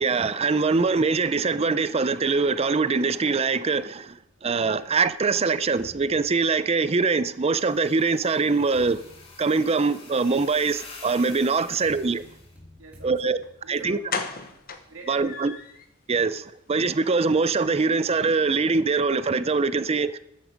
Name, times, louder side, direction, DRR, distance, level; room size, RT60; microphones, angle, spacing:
voice 1, 0.0-9.0 9.4-12.2 13.0-13.4 13.7-14.0 15.1-15.5 16.1-20.2, right 4 dB, 30° right, 0.5 m, -23 dB
sound 1, 4.9-7.2 8.0-15.0, left 1 dB, 5° right, 2.6 m, -53 dB
sound 2, 7.6-12.5, left 3 dB, 30° left, 2.0 m, -47 dB
voice 2, 12.8-15.5, right 3 dB, 75° right, 2.1 m, -48 dB
sound 3, 13.4-13.5 14.1-15.9 16.2-16.3 16.7-16.8 17.1-17.2, left 5 dB, 50° left, 1.1 m, -34 dB
13.5 x 9.5 x 5.2 m
head